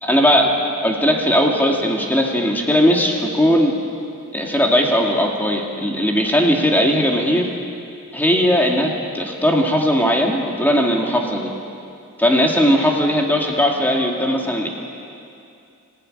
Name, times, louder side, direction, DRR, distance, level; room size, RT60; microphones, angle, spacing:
voice 1, 0.0-0.5 0.8-3.7 4.3-7.5 8.1-11.5 12.2-14.7, equal, 10° left, 0 dB, 2.0 m, -18 dB
26.5 x 15.5 x 9.8 m, 2.5 s
head